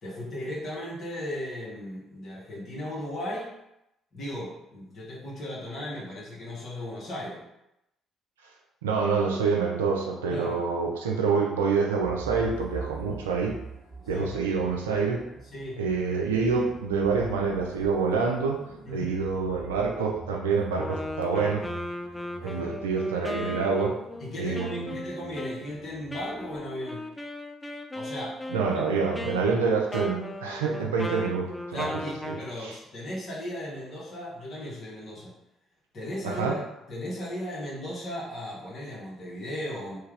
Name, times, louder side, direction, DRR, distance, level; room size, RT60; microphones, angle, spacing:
voice 1, 0.0-3.5 4.1-7.4 10.3-10.6 14.1-14.4 15.5-15.8 18.9-19.3 22.4-22.7 24.2-27.1 27.9-28.4 28.7-28.9 31.7-35.3 35.9-36.6 36.9-40.0, left 1 dB, 50° left, -5 dB, 1.3 m, -36 dB
voice 2, 8.8-13.6 14.1-15.2 15.8-18.6 18.9-21.6 22.4-23.9 24.4-25.0 28.5-31.9 32.2-32.8 36.2-36.6, right 5 dB, 85° right, 1 dB, 0.4 m, -27 dB
sound 1, 12.0-26.8, right 3 dB, 45° right, 0.8 m, -44 dB
Wind instrument woodwind instrument, 20.7-32.5, left 1 dB, 15° left, 0.4 m, -37 dB
3.2 x 2.3 x 3.3 m, 0.86 s
hypercardioid pair, 50°, 0 cm